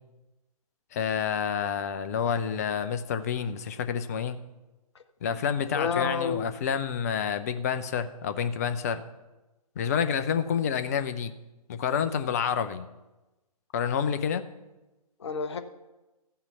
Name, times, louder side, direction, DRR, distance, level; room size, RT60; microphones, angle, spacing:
voice 1, 0.9-4.4 5.2-9.0 9.8-11.3 11.7-12.9 13.7-14.5, left 7 dB, 25° left, 11 dB, 0.5 m, -28 dB
voice 2, 5.7-6.6 15.2-15.6, left 6 dB, 45° left, 9 dB, 0.9 m, -30 dB
13.5 x 5.6 x 6.9 m, 1.1 s
figure-of-eight pair, 130°, 20 cm